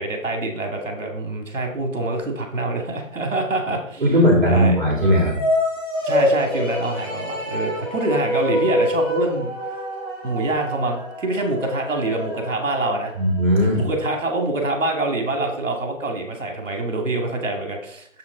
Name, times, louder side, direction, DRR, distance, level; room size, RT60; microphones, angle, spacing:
voice 1, 0.0-4.0 4.5-4.8 6.0-9.5 10.2-13.1 13.7-18.1, right 2 dB, 65° right, 3 dB, 2.2 m, -25 dB
voice 2, 4.0-5.3 13.1-13.8, equal, 40° right, -5 dB, 3.3 m, -17 dB
sound 1, 4.9-13.4, left 1 dB, 15° left, 1.1 m, -26 dB
7.4 x 5.8 x 3.9 m, 0.66 s
hypercardioid pair, 180°, 41 cm